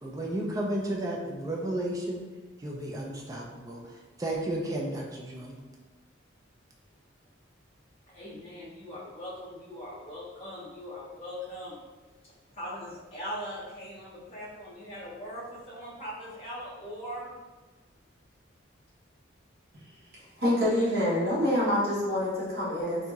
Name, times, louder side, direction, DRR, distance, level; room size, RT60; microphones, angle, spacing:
voice 1, 0.0-2.2 2.6-5.6, right 1 dB, 15° right, -2 dB, 0.3 m, -33 dB
voice 2, 8.1-11.8 12.2-17.3, equal, 35° left, -12 dB, 0.7 m, -40 dB
voice 3, 20.4-23.1, left 1 dB, 55° right, -8 dB, 1.0 m, -26 dB
2.8 x 2.7 x 2.3 m, 1.3 s
head